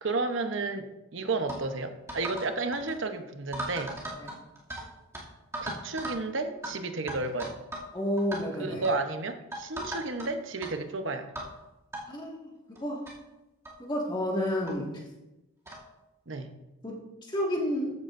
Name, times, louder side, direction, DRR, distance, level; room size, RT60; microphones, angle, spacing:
voice 1, 0.0-4.0 5.6-7.6 8.6-11.3 16.3-16.5, right 3 dB, 60° right, 7 dB, 0.9 m, -32 dB
sound 1, 1.5-1.6 2.1-2.5 2.7-2.9 3.5-4.8 5.1-5.2 5.5-6.2 6.6-6.7 7.1-7.9 8.2-8.4 8.8-9.0 9.5-10.3 10.6-10.7 11.4-11.5 11.9-12.0 12.8-12.9 13.1-13.2 13.6-13.8 14.7-14.8 15.7-15.9, right 1 dB, 15° right, 2.5 m, -37 dB
voice 2, 7.9-8.8 12.1-12.5 12.8-13.0 13.8-14.9 16.8-17.0 17.3-17.9, equal, 20° left, -2 dB, 1.9 m, -30 dB
14.5 x 9.6 x 2.6 m, 0.98 s
head